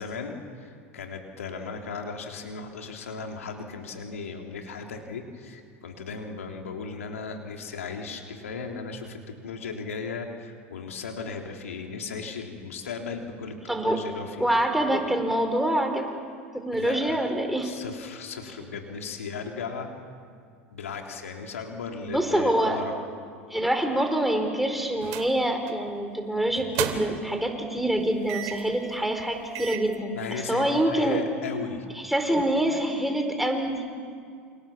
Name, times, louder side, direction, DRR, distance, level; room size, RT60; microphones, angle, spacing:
voice 1, 0.0-13.6 13.8-14.5 16.7-17.2 17.6-19.9 20.7-22.9 30.2-31.9, left 4 dB, 85° left, 2 dB, 3.5 m, -36 dB
voice 2, 13.7-14.0 14.4-16.1 16.5-17.7 22.0-22.8 23.5-31.2 31.9-33.8, right 1 dB, ahead, 4 dB, 4.8 m, -25 dB
sound 1, 25.0-25.3 25.7-25.9 26.5-27.3 28.3-28.7 29.2-29.3 29.5-29.9, right 11 dB, 60° right, 2.9 m, -33 dB
29.0 x 27.5 x 7.3 m, 2.2 s
hypercardioid pair, 85°, 7 cm